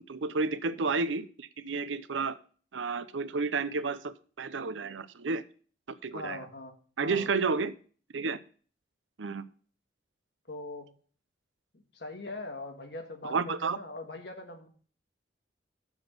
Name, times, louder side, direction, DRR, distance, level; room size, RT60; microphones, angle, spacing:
voice 1, 0.0-2.4 2.7-5.4 5.9-6.4 7.0-7.7 8.1-8.4 9.2-9.4 13.2-13.8, right 4 dB, 90° right, 14 dB, 0.7 m, -31 dB
voice 2, 6.1-6.7 7.0-7.3 10.5-10.9 11.7-14.7, left 2 dB, 65° left, 4 dB, 1.7 m, -41 dB
7.0 x 6.2 x 6.9 m, 0.42 s
head